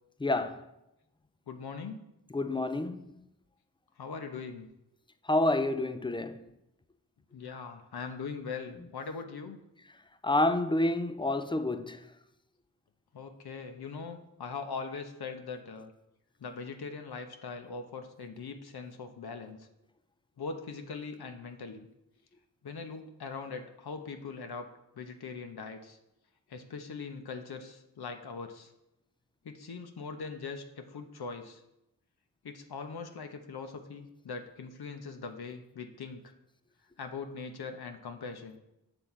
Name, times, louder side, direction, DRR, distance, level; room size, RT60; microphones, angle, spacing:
voice 1, 0.2-0.6 2.3-3.1 5.3-6.4 10.2-12.0, left 2 dB, 10° left, 0.4 m, -28 dB
voice 2, 1.5-2.0 4.0-4.7 7.3-9.6 13.1-15.9 16.4-19.7 20.4-21.9 22.6-24.7 25.0-26.0 26.5-28.7 29.4-31.6 32.4-36.3 37.0-38.6, left 5 dB, 60° left, 0.8 m, -41 dB
6.2 x 3.3 x 5.6 m
cardioid pair, 45°, 42 cm